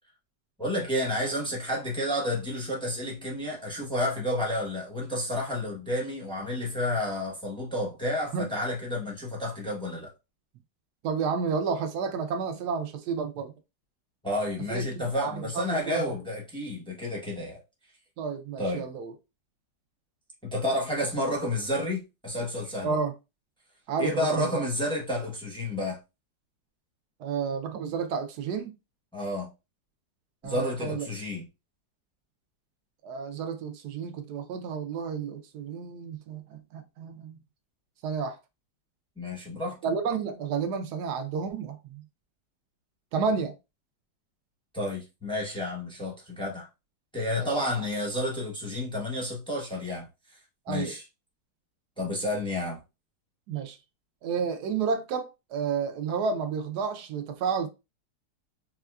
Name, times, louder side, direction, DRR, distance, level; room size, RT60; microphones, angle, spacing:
voice 1, 0.6-10.1 14.2-17.6 18.6-18.9 20.4-23.0 24.0-26.0 29.1-29.5 30.4-31.5 39.2-39.8 44.7-46.7 47.1-50.1 50.7-51.0 52.0-52.8, left 1 dB, 5° left, 0.5 m, -30 dB
voice 2, 11.0-13.5 14.7-16.2 18.2-19.1 22.8-23.1 23.9-24.6 27.2-28.7 30.4-31.1 33.0-37.4 38.0-38.4 39.8-42.0 43.1-43.5 47.4-47.5 50.7-50.9 53.5-53.8 54.2-57.7, right 5 dB, 70° right, 1.0 m, -31 dB
4.2 x 2.3 x 2.3 m
omnidirectional pair, 2.0 m